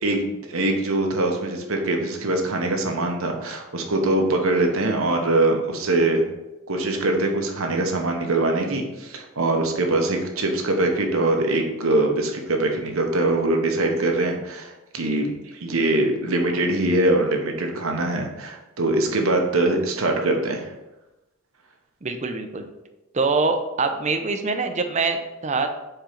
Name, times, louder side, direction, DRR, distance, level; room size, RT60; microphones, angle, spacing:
voice 1, 0.0-6.2 6.7-20.7, right 2 dB, 75° right, 2 dB, 1.1 m, -23 dB
voice 2, 22.0-22.7 23.1-25.7, right 3 dB, 35° right, 6 dB, 0.6 m, -24 dB
4.7 x 4.4 x 5.1 m, 0.99 s
head